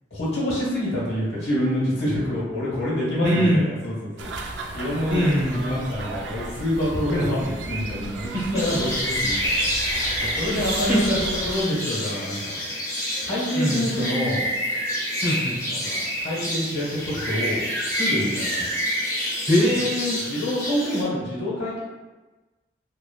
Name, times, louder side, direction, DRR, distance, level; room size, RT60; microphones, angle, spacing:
voice 1, 0.1-4.3 4.7-9.6 10.2-12.6 13.2-14.4 15.7-18.7 20.3-21.8, equal, 75° left, -8 dB, 1.1 m, -27 dB
voice 2, 3.2-3.7 5.1-5.6 8.3-8.6 10.5-10.6 10.9-11.2 13.5-13.9 15.2-15.6 19.5-20.2, equal, 25° right, -6 dB, 0.7 m, -22 dB
sound 1, 4.2-11.6, right 3 dB, 80° right, 0.3 m, -34 dB
sound 2, 8.5-21.0, equal, 15° left, 0.6 m, -28 dB
3.1 x 2.0 x 2.3 m, 1.2 s
head